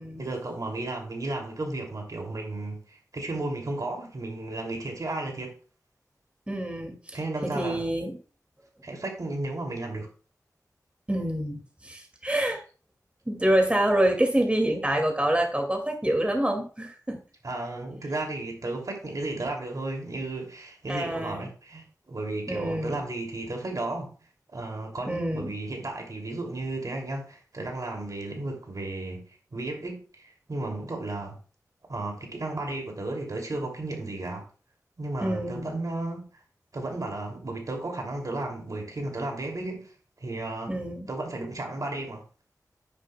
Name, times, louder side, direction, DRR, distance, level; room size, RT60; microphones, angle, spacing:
voice 1, 0.2-5.5 7.1-7.8 8.8-10.1 17.4-24.1 24.5-29.2 29.5-31.4 31.9-34.4 35.0-36.3 36.7-39.9 40.2-40.7 41.1-42.2, right 2 dB, 65° right, 2.9 m, -34 dB
voice 2, 6.5-8.1 11.1-12.6 13.3-17.2 20.9-21.5 22.5-23.0 25.1-25.5 35.2-35.7 40.7-41.1, right 1 dB, 20° right, 2.4 m, -27 dB
10.0 x 9.3 x 2.3 m
cardioid pair, 45°, 7 cm